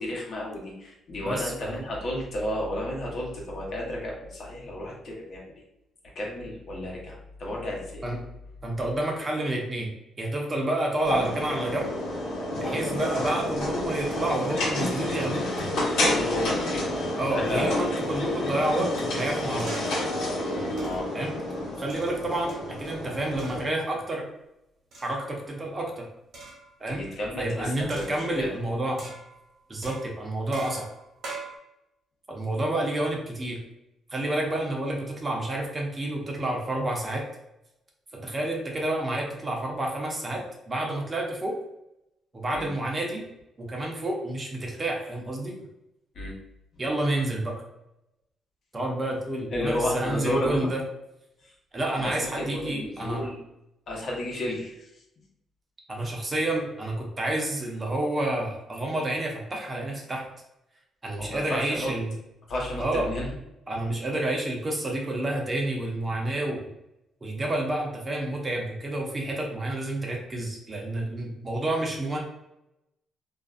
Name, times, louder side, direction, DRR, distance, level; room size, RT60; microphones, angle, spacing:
voice 1, 0.0-5.5 6.1-8.1 16.0-17.8 20.8-21.1 26.9-28.5 42.5-42.7 46.1-46.3 46.7-46.8 49.5-50.7 51.4-51.5 52.0-53.3 53.9-55.0 56.0-56.1 61.2-61.9 62.5-63.3, left 1 dB, 55° left, -3 dB, 0.9 m, -32 dB
voice 2, 1.2-1.7 8.0-8.2 8.6-9.9 10.2-11.9 12.6-15.5 17.2-19.8 21.1-21.3 21.8-24.3 25.0-26.1 26.8-27.0 27.4-29.0 29.7-30.9 32.3-33.6 34.1-37.3 38.1-41.5 42.3-43.2 43.6-45.5 46.8-47.5 48.7-50.8 51.7-53.3 55.9-60.3 61.0-62.1 62.8-63.1 63.7-66.6 67.2-72.2, right 1 dB, 30° right, 0 dB, 0.7 m, -29 dB
sound 1, 11.0-23.7, left 1 dB, 80° left, 1.0 m, -29 dB
sound 2, 19.6-20.1 20.8-21.2 21.9-22.8 23.4-23.7 24.9-25.4 26.3-26.7 27.9-28.6 29.0-29.5 29.8-31.6, right 3 dB, 60° right, 1.1 m, -42 dB
2.5 x 2.3 x 2.4 m, 0.85 s
cardioid pair, 90°, 0 cm